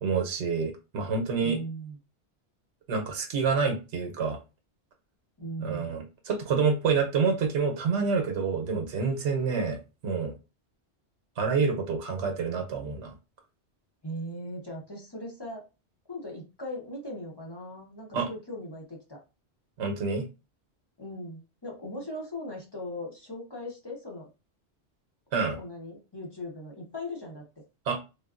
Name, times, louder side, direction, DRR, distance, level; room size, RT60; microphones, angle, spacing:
voice 1, 0.0-1.6 2.9-4.4 5.6-10.3 11.4-13.1 18.1-18.3 19.8-20.3 25.3-25.6 27.9-28.0, right 5 dB, 85° right, 3 dB, 0.9 m, -28 dB
voice 2, 1.4-2.0 5.4-5.9 14.0-15.6 16.1-19.2 21.0-24.3 25.6-27.4, equal, 25° left, -2 dB, 0.7 m, -39 dB
3.3 x 2.2 x 2.4 m, 0.29 s
omnidirectional pair, 1.1 m